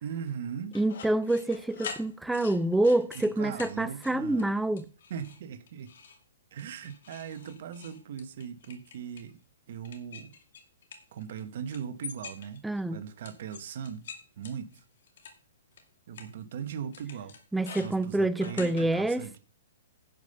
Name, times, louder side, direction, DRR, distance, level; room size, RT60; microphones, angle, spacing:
voice 1, 0.0-0.8 3.1-4.5 5.1-5.9 6.5-9.4 9.7-10.3 11.1-12.6 12.9-14.1 14.4-14.8 16.1-17.4 17.8-19.4, right 8 dB, 60° right, 1.0 m, -39 dB
sound 1, 0.7-3.3 3.6-3.7 4.0-4.5 4.8-5.4 5.7-6.2 6.6-9.3 9.8-11.4 11.7-12.8 13.2-15.3 15.8-15.9 16.1-16.3 16.9-18.8, left 6 dB, 70° left, 2.2 m, -45 dB
voice 2, 0.7-4.8 12.6-13.0 17.5-19.4, right 1 dB, 5° right, 0.5 m, -27 dB
10.5 x 5.2 x 6.7 m
hypercardioid pair, 135°, 0 cm